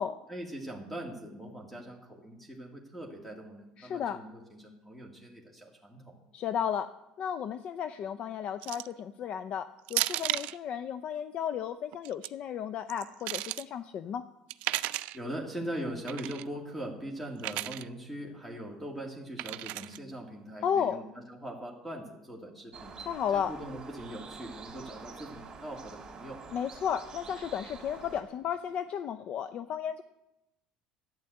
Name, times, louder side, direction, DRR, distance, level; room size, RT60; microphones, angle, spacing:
voice 1, 0.3-6.2 15.1-23.1 23.3-26.4, right 1 dB, 5° left, 0 dB, 2.3 m, -41 dB
voice 2, 3.8-4.2 6.3-6.9 7.2-14.2 20.6-21.0 23.0-23.5 26.5-30.0, left 8 dB, 50° left, 11 dB, 0.5 m, -33 dB
sound 1, 8.6-9.0 9.9-10.6 11.9-12.3 12.9-13.6 14.5-15.2 16.1-16.4 17.4-17.8 19.4-20.0, right 18 dB, 70° right, 0.4 m, -33 dB
sound 2, 22.7-28.2, right 5 dB, 35° right, 2.9 m, -47 dB
11.0 x 9.7 x 7.9 m, 0.94 s
supercardioid pair, 105°, 2 cm